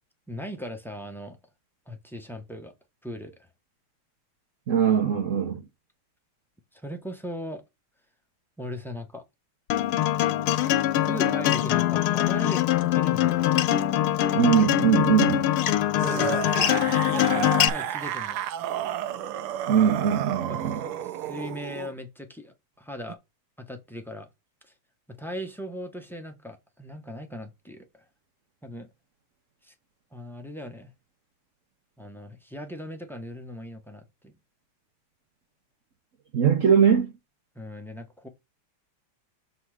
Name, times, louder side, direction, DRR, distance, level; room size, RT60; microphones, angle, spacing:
voice 1, 0.3-1.4 1.9-2.7 3.0-3.5 6.7-7.6 8.6-9.2 10.5-13.5 16.0-18.4 20.5-23.2 23.6-24.3 24.6-24.7 25.1-28.0 28.6-28.9 29.6-29.7 30.1-30.9 32.0-34.3 37.5-38.3, equal, ahead, 0.5 m, -39 dB
voice 2, 4.7-5.6 14.3-15.5 19.7-20.8 36.3-37.1, right 7 dB, 60° right, 0.8 m, -21 dB
Acoustic guitar, 9.7-17.7, left 13 dB, 80° left, 1.5 m, -23 dB
sound 1, 16.0-21.9 23.1-23.2, right 11 dB, 90° right, 1.6 m, -32 dB
7.0 x 4.1 x 4.9 m
omnidirectional pair, 2.4 m